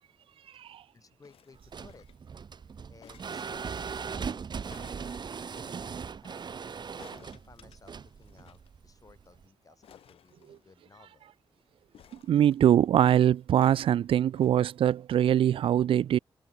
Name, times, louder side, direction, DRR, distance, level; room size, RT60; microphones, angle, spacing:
voice 1, 0.6-2.1 2.9-5.0 5.4-6.6 7.1-11.3, left 4 dB, 40° left, 5.8 m, -58 dB
sound 1, 1.2-2.3 3.0-3.8 4.7-5.8 7.0-8.7 9.0-9.1 9.3-9.4 9.8-11.0 11.9-12.9 13.6-14.6 15.3-15.4, left 10 dB, 90° left, 7.8 m, -57 dB
sound 2, 1.6-9.4, right 6 dB, 50° right, 2.1 m, -39 dB
voice 2, 12.3-16.2, right 10 dB, 70° right, 0.4 m, -23 dB
cardioid pair, 85°, 9 cm